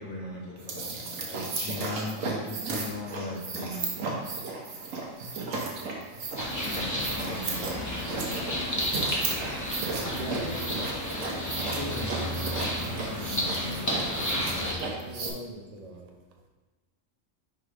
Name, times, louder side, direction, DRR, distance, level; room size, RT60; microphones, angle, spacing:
voice 1, 0.0-4.6 4.9-5.0 6.6-8.8 11.7-14.6, left 2 dB, 40° left, -5 dB, 2.2 m, -39 dB
sound 1, 0.6-15.3, right 4 dB, 75° right, 1.3 m, -35 dB
sound 2, 6.4-14.7, equal, 15° left, 0.9 m, -32 dB
voice 2, 9.9-10.7 13.2-13.4 14.5-14.8 15.0-16.1, right 1 dB, 40° right, 1 dB, 0.6 m, -42 dB
4.8 x 3.9 x 5.1 m, 1.3 s
omnidirectional pair, 1.4 m